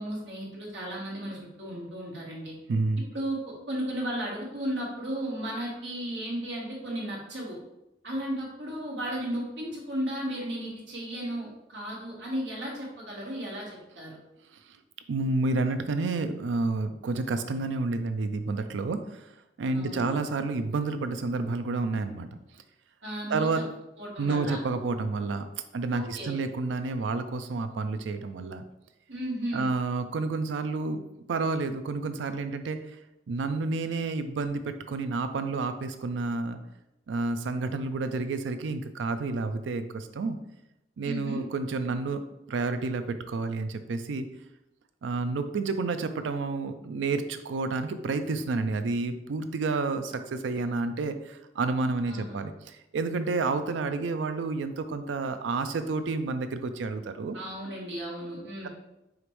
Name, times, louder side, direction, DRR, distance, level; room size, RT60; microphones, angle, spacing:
voice 1, 0.0-2.5 3.1-3.4 3.7-7.6 8.0-14.2 19.7-20.1 23.0-23.6 24.0-24.6 25.9-26.3 29.1-29.7 41.0-41.4 52.1-52.3 57.3-58.7, right 1 dB, 70° right, -4 dB, 1.4 m, -34 dB
voice 2, 2.7-3.0 15.1-19.2 19.6-22.3 23.3-23.6 24.2-25.5 25.7-28.6 29.5-31.0 31.3-32.8 33.3-36.6 37.1-40.4 41.0-44.3 45.0-57.4, right 3 dB, 90° right, 10 dB, 0.4 m, -30 dB
4.9 x 3.0 x 3.1 m, 0.90 s
head